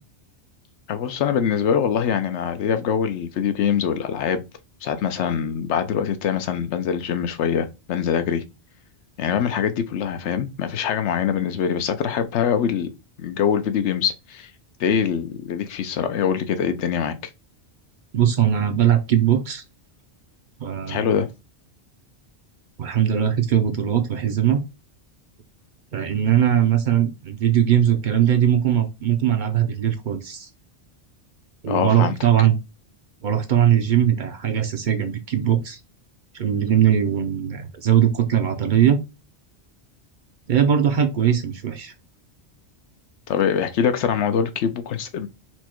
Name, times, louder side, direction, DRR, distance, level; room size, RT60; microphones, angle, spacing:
voice 1, 0.9-4.4 4.8-8.4 9.2-12.9 13.2-14.5 14.8-17.1 20.9-21.3 31.7-32.2 43.3-45.3, left 7 dB, 85° left, 0.9 m, -23 dB
voice 2, 18.1-19.6 20.6-21.1 22.8-24.6 25.9-30.5 31.6-32.6 33.2-35.8 36.3-39.0 40.5-41.9, right 10 dB, 60° right, 0.6 m, -20 dB
4.4 x 2.2 x 4.3 m
omnidirectional pair, 1.1 m